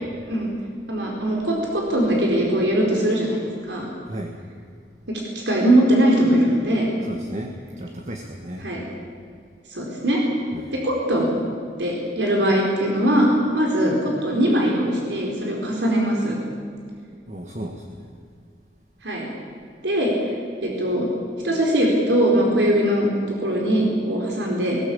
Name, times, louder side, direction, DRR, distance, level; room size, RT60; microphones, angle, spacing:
voice 1, 0.9-3.9 5.1-6.9 8.6-8.8 9.7-10.2 10.7-11.3 11.8-16.4 19.0-19.3 19.8-20.3 20.6-21.1 21.4-24.8, right 1 dB, 80° right, -1 dB, 4.5 m, -21 dB
voice 2, 4.0-4.4 7.1-8.6 10.5-10.7 17.3-18.1, equal, 40° right, 3 dB, 1.6 m, -34 dB
20.5 x 19.5 x 8.7 m, 2.2 s
head